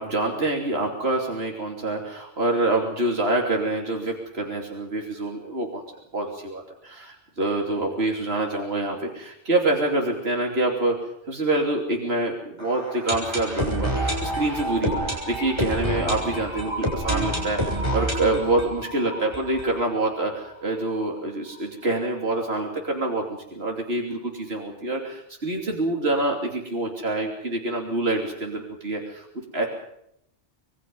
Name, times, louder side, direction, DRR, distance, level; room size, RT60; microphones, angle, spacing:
voice 1, 0.0-5.8 6.1-11.0 11.3-29.2 29.5-29.7, right 2 dB, 60° right, 1 dB, 3.3 m, -26 dB
sound 1, 12.6-20.3 20.6-20.7 20.9-21.0 21.5-21.6, right 1 dB, 25° right, 6.8 m, -28 dB
26.0 x 22.5 x 5.4 m, 0.76 s
omnidirectional pair, 1.2 m